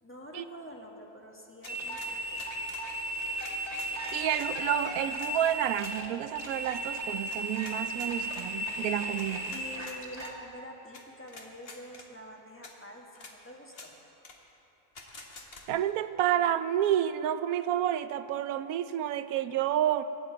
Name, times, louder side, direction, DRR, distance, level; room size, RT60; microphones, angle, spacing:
voice 1, 0.0-2.5 3.1-3.5 9.5-13.9 15.6-15.7, equal, 10° left, 0 dB, 1.2 m, -47 dB
sound 1, 1.6-2.9 3.4-4.5 5.1-5.3 5.8-6.0 6.3-6.5 7.3-8.5 9.2-10.3 10.9-11.0 11.3-12.1 12.6-12.7 13.1-13.3 13.7-13.9 14.2-14.4 14.9-15.6, left 3 dB, 40° left, 1.4 m, -48 dB
sound 2, 1.7-10.3, right 1 dB, 25° right, 1.6 m, -35 dB
voice 2, 4.1-9.6 15.7-20.0, right 11 dB, 75° right, 13 dB, 1.0 m, -29 dB
23.5 x 9.0 x 4.6 m, 3.0 s
omnidirectional pair, 1.6 m